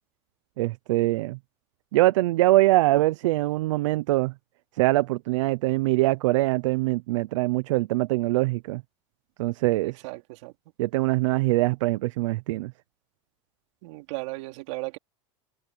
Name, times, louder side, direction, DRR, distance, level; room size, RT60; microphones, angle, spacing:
voice 1, 0.6-1.4 1.9-4.3 4.7-8.8 9.4-10.0 10.8-12.7, right 18 dB, 85° right, 0.7 m, -23 dB
voice 2, 9.8-10.5 13.8-15.0, right 24 dB, 70° right, 3.4 m, -36 dB
supercardioid pair, 145°, 16 cm